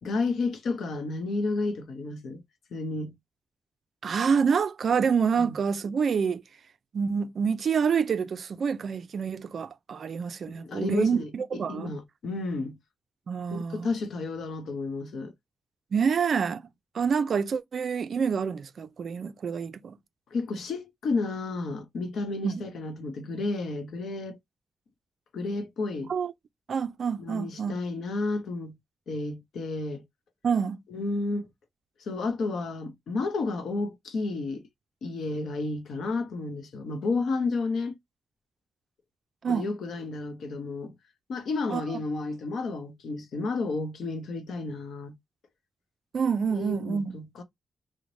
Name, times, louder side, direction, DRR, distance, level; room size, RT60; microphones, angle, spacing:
voice 1, 0.0-2.4 2.7-3.1 5.4-5.6 10.5-12.8 13.5-15.3 20.3-24.4 25.3-26.1 27.2-28.7 29.1-30.0 30.9-31.5 32.0-34.6 35.0-38.0 39.5-40.9 41.3-45.2 46.5-47.4, left 3 dB, 70° left, 0.7 m, -31 dB
voice 2, 4.0-6.4 6.9-11.9 13.3-13.9 15.9-16.6 16.9-20.0 22.4-22.6 26.1-26.3 26.7-27.7 30.4-30.8 39.4-39.7 41.7-41.8 46.1-47.2, right 6 dB, 50° right, 0.4 m, -27 dB
3.1 x 2.1 x 3.8 m
wide cardioid pair, 140°, 0 cm